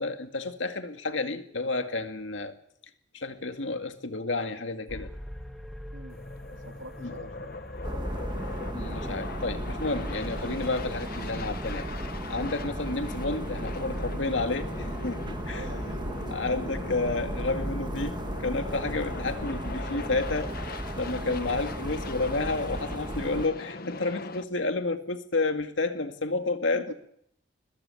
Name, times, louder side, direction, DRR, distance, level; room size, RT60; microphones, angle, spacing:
voice 1, 0.0-2.6 3.1-5.1 7.0-7.1 8.7-11.9 12.3-15.7 16.3-26.9, left 3 dB, 75° left, 2.2 m, -31 dB
sound 1, 4.9-11.6, equal, ahead, 2.1 m, -42 dB
sound 2, 6.1-24.4, left 4 dB, 55° left, 1.1 m, -41 dB
voice 2, 6.5-7.5 12.6-12.8 15.5-16.1 16.4-16.6 26.7-26.9, right 2 dB, 75° right, 2.7 m, -45 dB
sound 3, 7.8-23.5, right 1 dB, 25° right, 1.5 m, -35 dB
22.5 x 20.5 x 7.2 m
head